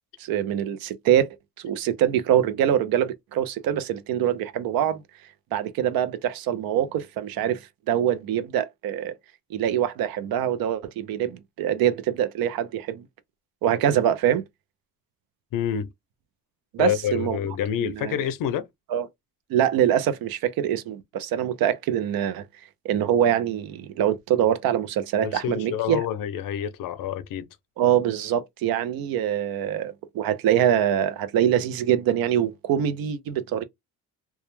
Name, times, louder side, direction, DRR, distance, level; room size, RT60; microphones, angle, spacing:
voice 1, 0.2-1.3 1.6-5.0 5.5-7.6 7.9-9.1 9.5-13.0 13.6-14.4 16.7-17.4 17.8-18.2 18.9-19.1 19.5-22.5 22.8-26.0 27.8-33.6, right 10 dB, 80° right, 0.5 m, -24 dB
voice 2, 15.5-15.9 16.8-18.7 25.2-27.5, left 9 dB, 65° left, 0.5 m, -27 dB
2.2 x 2.1 x 3.0 m
cardioid pair, 135°, 35 cm